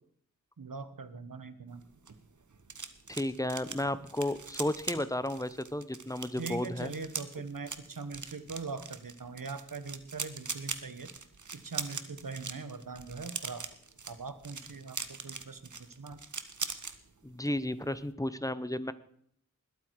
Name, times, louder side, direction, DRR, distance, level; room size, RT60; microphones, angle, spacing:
voice 1, 0.6-1.8 6.4-11.1 11.5-13.6 14.1-15.7 16.0-16.2, right 4 dB, 85° right, 12 dB, 1.3 m, -41 dB
sound 1, 1.8-17.0 17.3-17.6 17.8-18.1, right 4 dB, 65° right, 1.2 m, -42 dB
voice 2, 3.1-6.9 17.2-18.9, left 1 dB, 10° left, 14 dB, 0.9 m, -33 dB
20.5 x 8.8 x 4.7 m, 0.65 s
wide cardioid pair, 50°, 32 cm